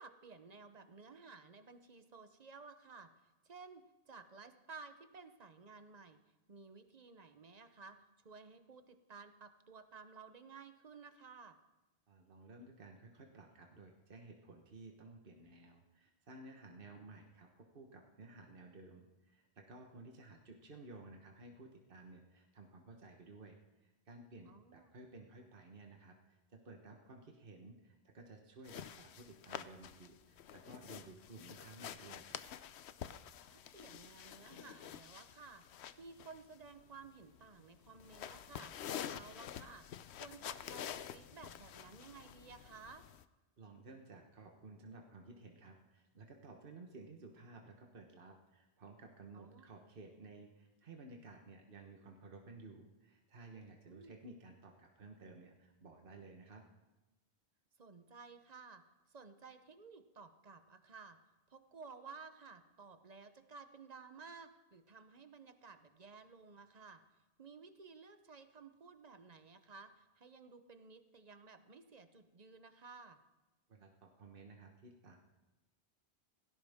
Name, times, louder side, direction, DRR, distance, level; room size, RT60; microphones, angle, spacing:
voice 1, 0.0-3.1 3.4-6.2 6.5-8.0 8.2-11.6 16.8-17.1 24.4-24.9 33.5-35.7 36.0-39.9 40.1-43.1 49.3-49.6 53.8-54.1 57.8-61.2 61.5-67.0 67.4-73.2, right 4 dB, 40° right, 9 dB, 0.9 m, -55 dB
voice 2, 12.1-23.6 23.8-32.4 43.6-56.7 73.7-75.2, right 3 dB, 55° right, 2 dB, 1.5 m, -55 dB
sound 1, 28.6-43.2, left 9 dB, 80° left, 0.9 m, -49 dB
18.0 x 16.0 x 3.6 m, 1.1 s
omnidirectional pair, 1.1 m